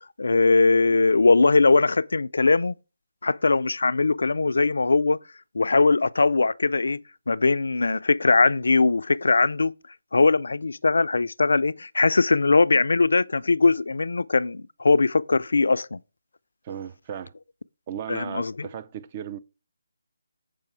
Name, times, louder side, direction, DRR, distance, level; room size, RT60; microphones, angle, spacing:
voice 1, 0.2-2.8 3.2-5.2 5.5-7.0 7.3-9.7 10.1-16.0 18.1-18.7, left 3 dB, 70° left, 0.4 m, -20 dB
voice 2, 16.6-17.3 17.9-19.4, right 9 dB, 30° right, 0.5 m, -36 dB
6.9 x 4.7 x 4.5 m
figure-of-eight pair, 150°, 0 cm